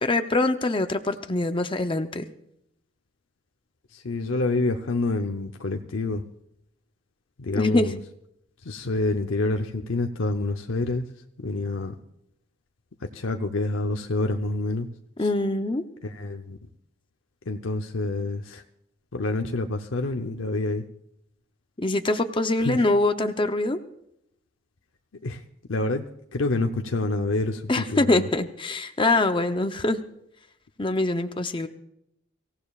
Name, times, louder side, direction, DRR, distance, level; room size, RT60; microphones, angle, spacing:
voice 1, 0.0-2.2 7.5-7.9 15.2-15.8 21.8-23.8 27.7-30.0 30.8-31.7, left 2 dB, 25° left, 7 dB, 0.7 m, -24 dB
voice 2, 3.9-6.2 7.4-8.0 8.6-11.0 11.4-11.9 13.1-14.9 15.2-15.3 16.0-16.6 17.5-18.6 19.1-20.8 22.6-22.8 25.2-25.4 25.7-28.3, left 2 dB, 80° left, 4 dB, 0.8 m, -27 dB
25.0 x 16.0 x 2.4 m, 0.77 s
head